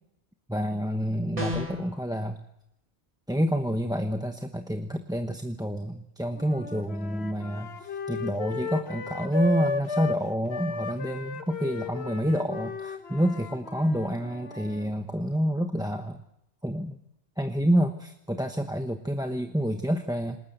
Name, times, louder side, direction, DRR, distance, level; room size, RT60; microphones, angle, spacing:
voice 1, 0.5-2.4 3.3-16.2 16.6-17.0 17.4-20.4, equal, 5° right, 5 dB, 0.9 m, -28 dB
sound 1, 1.4-1.9, left 2 dB, 40° right, 4.6 m, -31 dB
sound 2, 6.3-10.2 10.5-14.9, left 4 dB, 70° left, 1.6 m, -35 dB
26.5 x 13.0 x 8.0 m, 0.81 s
omnidirectional pair, 1.1 m